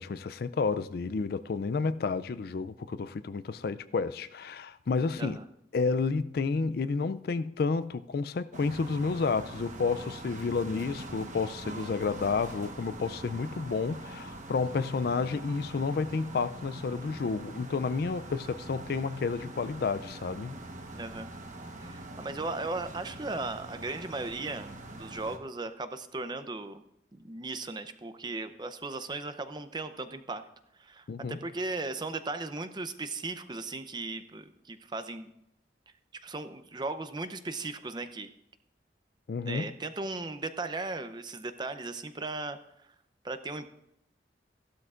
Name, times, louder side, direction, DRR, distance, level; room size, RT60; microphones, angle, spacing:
voice 1, 0.0-5.4 5.7-20.6 31.1-31.4 39.3-39.7, left 4 dB, 55° left, 0.4 m, -30 dB
sound 1, 8.5-25.4, right 2 dB, 45° right, 1.1 m, -43 dB
voice 2, 20.9-21.3 21.8-26.8 27.1-30.4 30.8-35.3 36.2-38.3 39.4-42.6 43.2-43.7, right 3 dB, 25° right, 0.6 m, -37 dB
15.5 x 12.0 x 2.5 m
head